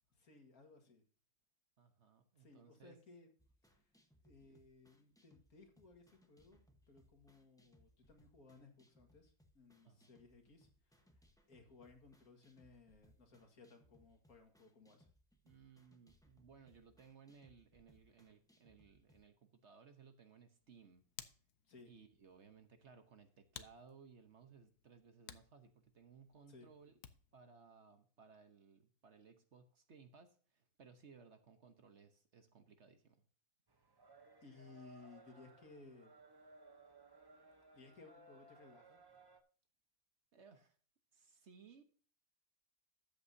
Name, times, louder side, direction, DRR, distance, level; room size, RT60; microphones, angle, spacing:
voice 1, 0.2-1.0 2.4-3.3 3.6-3.9 4.2-6.6 6.9-11.1 11.5-15.1 21.7-21.9 26.5-26.7 34.4-36.1 37.7-39.0, left 3 dB, 70° left, 4 dB, 2.3 m, -61 dB
voice 2, 1.8-3.0 4.4-4.6 9.8-10.1 15.4-21.0 21.8-26.9 27.3-33.2 40.3-40.8 41.1-41.8, right 5 dB, 50° right, 8 dB, 1.2 m, -62 dB
sound 1, 3.4-19.2, equal, 5° left, 1.0 m, -72 dB
Hands, 20.6-27.4, left 10 dB, 85° left, 1.3 m, -59 dB
sound 2, 33.7-39.4, right 2 dB, 20° right, 0.6 m, -62 dB
13.0 x 8.4 x 2.7 m, 0.43 s
omnidirectional pair, 1.6 m